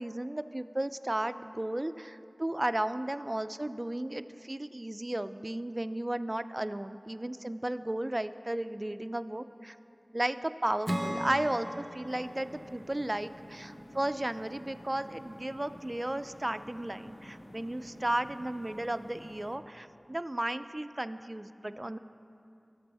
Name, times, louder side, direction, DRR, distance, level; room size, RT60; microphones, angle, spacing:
voice 1, 0.0-9.8 10.1-22.0, right 1 dB, 35° right, 11 dB, 0.3 m, -34 dB
Acoustic guitar / Strum, 10.9-14.3, equal, 15° right, 0.7 m, -38 dB
sound 1, 12.1-19.6, equal, 45° left, 0.8 m, -50 dB
16.5 x 6.9 x 3.4 m, 2.7 s
wide cardioid pair, 45°, 0 cm